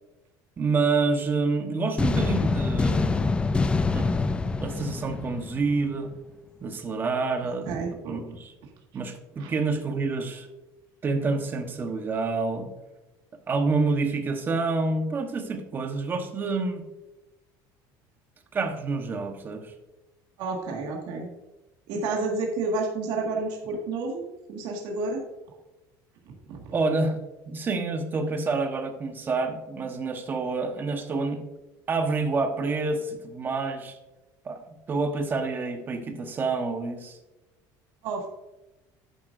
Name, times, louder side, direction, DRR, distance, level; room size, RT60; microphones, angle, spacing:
voice 1, 0.6-3.3 3.9-4.3 4.6-6.1 6.6-7.7 8.1-8.5 8.9-10.5 11.0-12.7 13.5-16.8 18.5-19.7 26.7-27.2 27.5-31.4 31.9-34.0 34.4-34.6 34.9-37.2, right 3 dB, 25° right, 6 dB, 1.1 m, -28 dB
sound 1, 2.0-5.9, left 3 dB, 10° left, 0.4 m, -25 dB
voice 2, 7.4-8.2 9.4-9.5 20.4-21.3 21.9-24.2 24.5-25.2 26.5-26.7 38.0-38.3, right 3 dB, 65° right, 0 dB, 1.8 m, -30 dB
10.5 x 8.8 x 2.6 m, 1.0 s
cardioid pair, 155°, 8 cm